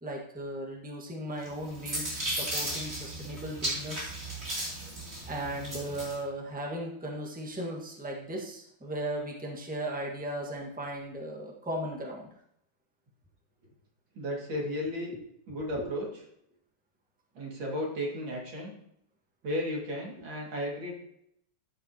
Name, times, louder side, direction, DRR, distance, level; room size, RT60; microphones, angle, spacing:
voice 1, 0.0-4.2 5.3-12.3 15.8-15.9, right 1 dB, 5° right, -1 dB, 1.3 m, -37 dB
sound 1, 1.4-6.2, right 1 dB, 35° right, 3.2 m, -35 dB
voice 2, 14.1-15.1 15.5-16.2 17.3-18.7 19.4-20.9, equal, 85° right, -2 dB, 3.0 m, -34 dB
13.0 x 7.4 x 2.9 m, 0.74 s
omnidirectional pair, 2.1 m